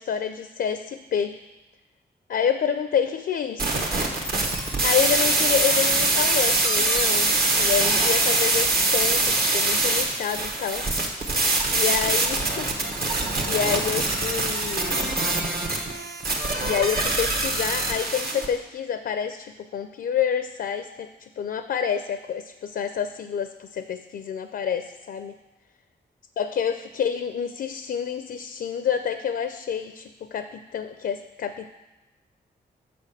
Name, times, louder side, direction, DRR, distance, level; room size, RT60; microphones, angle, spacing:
voice 1, 0.0-1.3 2.3-3.9 4.8-10.9 11.7-15.2 16.6-25.3 26.4-31.7, left 8 dB, 65° left, 10 dB, 0.4 m, -28 dB
sound 1, 3.6-18.5, right 2 dB, 60° right, 1.3 m, -23 dB
6.6 x 4.2 x 6.5 m, 1.1 s
cardioid pair, 55°, 18 cm